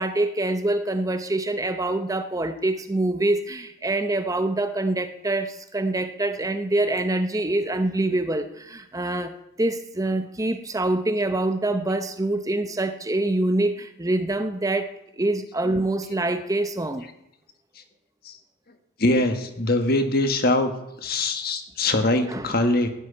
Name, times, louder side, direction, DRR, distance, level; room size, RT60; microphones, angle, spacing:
voice 1, 0.0-9.3 9.6-14.9 15.2-17.0 22.3-22.5, right 2 dB, 15° right, 9 dB, 0.7 m, -25 dB
voice 2, 19.0-20.7 21.0-22.9, left 2 dB, 50° left, 7 dB, 1.5 m, -22 dB
16.0 x 7.7 x 9.6 m, 0.88 s
head